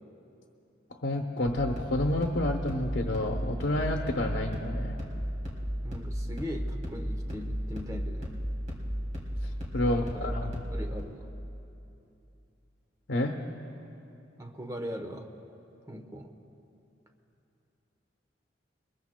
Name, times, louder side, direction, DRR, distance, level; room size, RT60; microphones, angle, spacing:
voice 1, 1.0-5.0 9.7-10.5 13.1-13.4, left 1 dB, 85° left, 2 dB, 0.8 m, -29 dB
sound 1, 1.4-11.0, equal, 40° right, 2.8 m, -34 dB
voice 2, 5.8-8.3 9.8-11.3 14.4-15.3 15.9-16.3, equal, 15° right, 4 dB, 0.9 m, -40 dB
23.0 x 20.5 x 2.2 m, 2.8 s
head